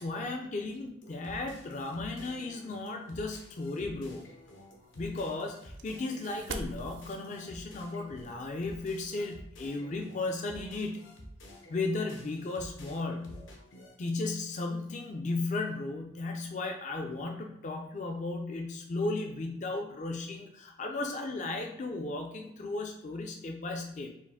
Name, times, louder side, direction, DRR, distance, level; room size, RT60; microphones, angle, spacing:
voice 1, 0.0-4.2 5.0-11.0 11.7-13.4 14.0-24.1, left 2 dB, 35° left, 3 dB, 0.3 m, -35 dB
sound 1, 1.0-13.9, equal, 75° left, 0.8 m, -51 dB
sound 2, 4.2-9.2, right 3 dB, 65° right, 0.4 m, -46 dB
4.5 x 2.5 x 3.4 m, 0.81 s
head